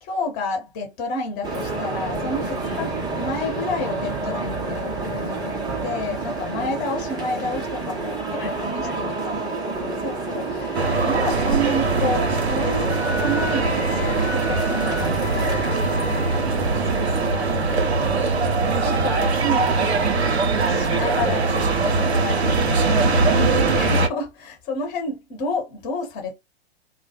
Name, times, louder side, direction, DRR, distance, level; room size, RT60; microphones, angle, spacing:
voice 1, 0.0-2.9 3.2-10.7 11.0-15.7 16.8-17.5 18.6-20.1 20.7-23.4 23.7-26.3, left 1 dB, 30° left, 1.0 m, -30 dB
sound 1, 1.4-17.3, right 3 dB, 15° right, 0.5 m, -29 dB
voice 2, 2.6-2.9 6.6-6.8 8.4-9.4 10.4-10.7 16.0-16.5 17.3-18.1 20.7-21.0 23.0-23.7, left 4 dB, 60° left, 0.9 m, -39 dB
Wind instrument woodwind instrument, 10.6-16.4, left 4 dB, 85° left, 0.5 m, -35 dB
sound 2, 10.7-24.1, right 3 dB, 80° right, 0.6 m, -21 dB
2.2 x 2.0 x 2.8 m
figure-of-eight pair, 105°, 32 cm